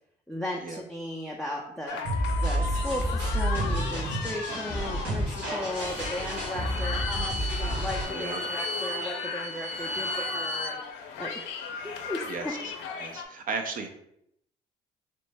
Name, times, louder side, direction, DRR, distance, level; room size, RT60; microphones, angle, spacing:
voice 1, 0.3-2.0 2.4-10.8 11.2-11.5 11.8-12.5, left 1 dB, ahead, -1 dB, 0.4 m, -36 dB
sound 1, 1.9-13.3, left 6 dB, 85° left, 0.4 m, -37 dB
sound 2, 2.0-8.0, right 1 dB, 85° right, 1.3 m, -30 dB
Bowed string instrument, 5.4-10.8, left 1 dB, 40° left, 0.7 m, -36 dB
voice 2, 8.1-8.4 12.3-12.7 13.0-13.9, right 4 dB, 50° right, 5 dB, 0.5 m, -35 dB
3.1 x 2.1 x 3.3 m, 0.75 s
supercardioid pair, 65°, 18 cm